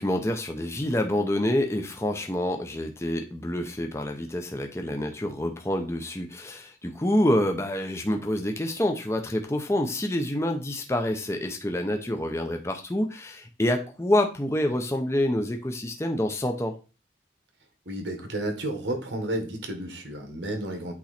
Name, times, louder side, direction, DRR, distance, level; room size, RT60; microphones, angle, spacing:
voice 1, 0.0-16.8, left 1 dB, 15° left, 4 dB, 0.6 m, -27 dB
voice 2, 17.9-20.9, right 1 dB, 85° right, 4 dB, 1.5 m, -32 dB
8.4 x 3.1 x 4.3 m, 0.33 s
head